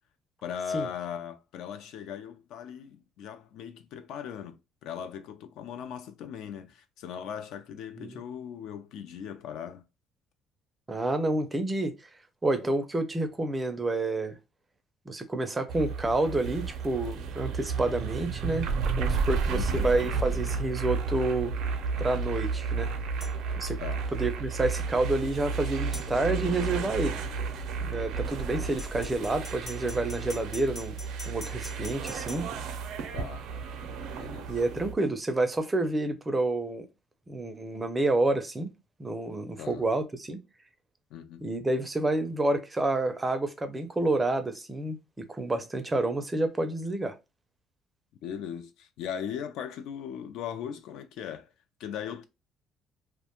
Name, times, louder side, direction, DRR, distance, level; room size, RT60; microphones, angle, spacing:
voice 1, 0.4-4.6 4.8-9.8 19.5-19.9 23.8-24.0 33.1-33.5 34.2-34.6 39.6-39.8 41.1-41.4 48.2-51.5 51.8-52.2, left 8 dB, 75° left, 0.4 m, -38 dB
voice 2, 10.9-11.9 12.4-14.4 15.1-18.7 19.0-21.5 22.0-22.9 23.6-23.8 24.2-27.2 27.8-31.0 31.3-32.5 34.5-36.9 37.3-38.7 39.0-40.4 41.4-47.1, right 2 dB, 15° right, 0.4 m, -29 dB
sound 1, 15.7-34.9, right 5 dB, 75° right, 0.5 m, -32 dB
sound 2, 23.2-23.4 25.9-26.1 28.8-32.4, left 2 dB, 35° left, 0.9 m, -43 dB
2.4 x 2.2 x 2.8 m
cardioid pair, 130°, 0 cm